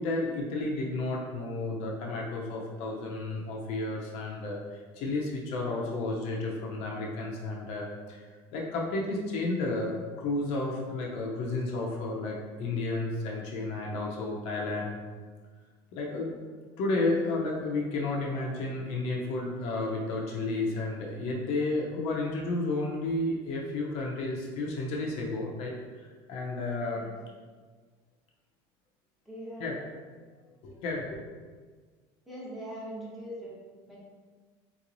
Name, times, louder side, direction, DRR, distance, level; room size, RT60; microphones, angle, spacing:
voice 1, 0.0-8.3 8.5-15.0 15.9-16.4 16.8-27.0 29.6-29.8 30.6-31.2, left 2 dB, 60° left, -2 dB, 0.6 m, -32 dB
voice 2, 29.2-29.7 32.3-33.6 33.9-34.0, equal, ahead, -8 dB, 0.9 m, -41 dB
3.8 x 3.0 x 2.6 m, 1.5 s
cardioid pair, 145°, 12 cm